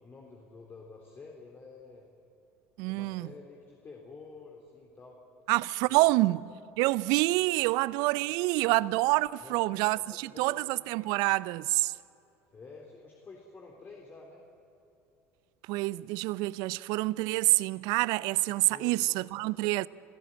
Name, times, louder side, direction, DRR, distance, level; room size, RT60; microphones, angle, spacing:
voice 1, 0.0-2.1 2.9-5.2 5.9-6.4 7.5-7.8 8.1-8.2 9.4-10.8 12.5-14.4 18.5-19.2, left 4 dB, 30° left, 3.7 m, -50 dB
voice 2, 2.8-3.3 5.5-6.4 6.8-11.9 15.7-19.9, right 21 dB, 60° right, 0.5 m, -27 dB
29.5 x 16.0 x 8.9 m
hypercardioid pair, 70°, 8 cm